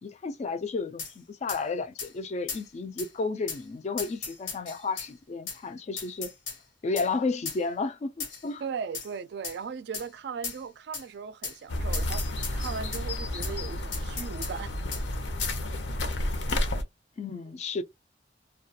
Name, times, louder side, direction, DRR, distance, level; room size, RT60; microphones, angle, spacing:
voice 1, 0.0-6.3 6.8-8.6 17.2-17.8, left 4 dB, 35° left, 0.3 m, -32 dB
sound 1, 1.0-1.1 1.5-1.6 2.0-2.1 2.5-2.6 3.0-3.1 3.5-3.6 4.0-5.1 5.5-5.6 6.0-6.6 7.0-7.1 7.5-7.6 8.2-8.5 8.9-9.1 9.4-9.6 9.9-10.1 10.4-10.6 10.9-11.1 11.4-11.6 11.9-13.0 13.4-13.5 13.9-14.5 14.9-15.0 15.4-15.6, left 5 dB, 85° left, 1.1 m, -36 dB
voice 2, 8.6-14.7, right 6 dB, 65° right, 0.3 m, -38 dB
sound 2, 11.7-16.8, left 1 dB, 70° left, 0.6 m, -31 dB
2.3 x 2.3 x 2.7 m
head